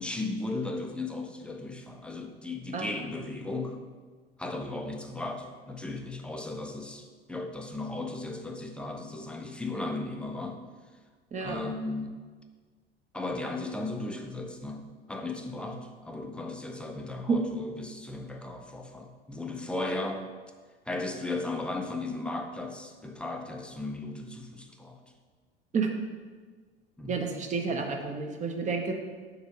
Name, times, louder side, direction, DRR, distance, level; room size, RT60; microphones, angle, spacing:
voice 1, 0.0-3.8 4.4-10.6 11.4-12.2 13.1-20.3 20.9-25.0 27.0-27.2, left 2 dB, 5° left, 4 dB, 0.5 m, -36 dB
voice 2, 27.1-28.9, right 5 dB, 25° right, 3 dB, 0.8 m, -30 dB
5.0 x 4.3 x 5.3 m, 1.5 s
figure-of-eight pair, 70°, 30 cm